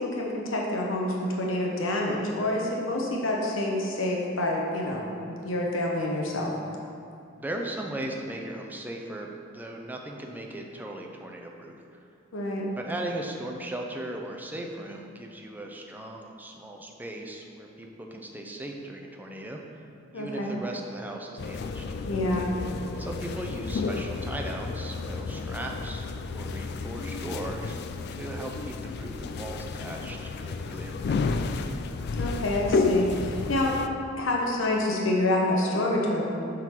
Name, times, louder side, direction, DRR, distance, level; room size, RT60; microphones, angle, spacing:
voice 1, 0.0-6.5 12.3-12.7 20.1-20.5 22.1-22.5 32.2-33.8 34.2-36.2, left 1 dB, 75° left, -2 dB, 0.9 m, -27 dB
voice 2, 7.4-11.8 12.8-19.9 20.1-21.8 22.9-27.8 28.1-31.6, right 1 dB, 10° right, 1 dB, 0.6 m, -38 dB
sound 1, 21.4-33.9, left 4 dB, 55° left, 0.3 m, -31 dB
7.4 x 3.8 x 5.8 m, 2.6 s
head